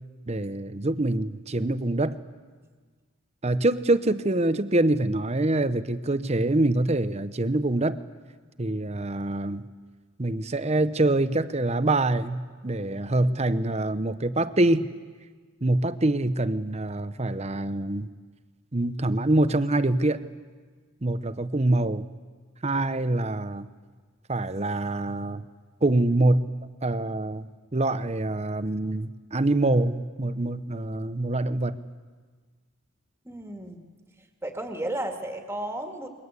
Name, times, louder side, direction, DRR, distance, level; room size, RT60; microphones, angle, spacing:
voice 1, 0.3-2.2 3.4-8.0 8.6-9.7 10.2-14.9 15.6-18.1 18.7-20.3 21.0-22.1 22.6-23.7 24.3-25.4 25.8-26.5 26.8-31.8, right 2 dB, 30° right, 13 dB, 0.9 m, -25 dB
voice 2, 33.2-33.8 34.4-36.1, right 1 dB, 10° right, 4 dB, 2.1 m, -33 dB
28.5 x 22.5 x 8.3 m, 1.5 s
head